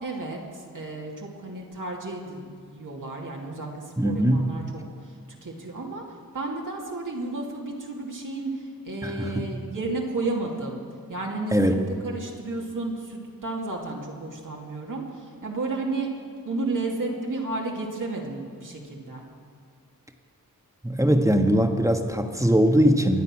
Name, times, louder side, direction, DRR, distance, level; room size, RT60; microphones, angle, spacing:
voice 1, 0.0-4.6 5.0-10.8 11.1-11.7 12.0-16.1 16.4-19.3, right 2 dB, 65° right, -2 dB, 2.6 m, -32 dB
voice 2, 4.0-4.5 9.0-9.4 11.5-11.7 20.8-23.2, equal, 10° right, 4 dB, 1.4 m, -21 dB
24.0 x 8.3 x 6.1 m, 2.3 s
wide cardioid pair, 65°, 34 cm